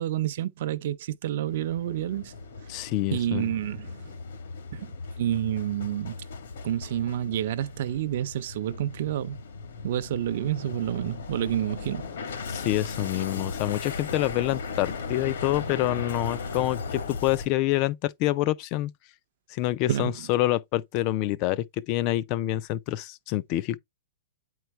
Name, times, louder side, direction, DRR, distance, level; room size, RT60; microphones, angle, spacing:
voice 1, 0.0-2.3 3.1-4.1 4.7-6.2 6.6-9.4 9.8-12.1 19.9-20.3, right 11 dB, 50° right, 0.6 m, -29 dB
sound 1, 1.5-17.5, left 4 dB, 75° left, 1.7 m, -37 dB
voice 2, 2.7-3.4 12.5-18.9 19.5-23.8, left 15 dB, 30° left, 0.4 m, -27 dB
8.9 x 4.5 x 3.1 m
hypercardioid pair, 170°, 0 cm